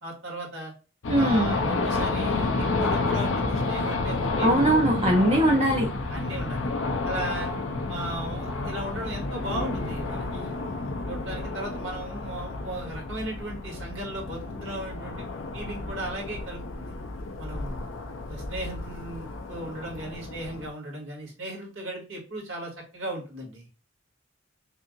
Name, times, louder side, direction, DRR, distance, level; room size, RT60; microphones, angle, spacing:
voice 1, 0.0-0.7 1.1-5.1 6.1-6.7 7.0-7.5 7.9-16.9 17.4-17.9 18.3-23.7, right 1 dB, 70° right, -3 dB, 2.2 m, -36 dB
sound 1, 1.0-20.7, left 3 dB, 75° left, 0.7 m, -30 dB
voice 2, 1.1-1.5 4.4-5.9, right 1 dB, 35° right, -1 dB, 0.8 m, -21 dB
5.7 x 2.7 x 2.5 m, 0.34 s
head